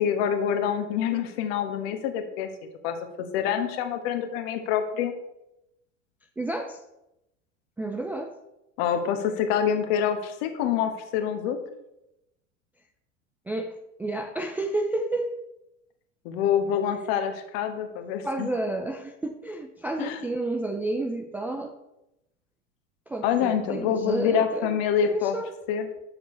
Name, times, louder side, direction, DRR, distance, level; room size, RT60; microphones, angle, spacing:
voice 1, 0.0-2.5 2.8-3.0 3.3-5.1 8.8-11.6 16.2-18.5 20.0-20.2 23.2-25.3 25.7-25.9, left 8 dB, 55° left, 1.2 m, -26 dB
voice 2, 6.4-6.8 7.8-8.4 13.5-15.3 18.2-21.7 23.1-25.5, right 2 dB, 5° right, 0.3 m, -31 dB
7.0 x 6.5 x 4.3 m
figure-of-eight pair, 80°, 37 cm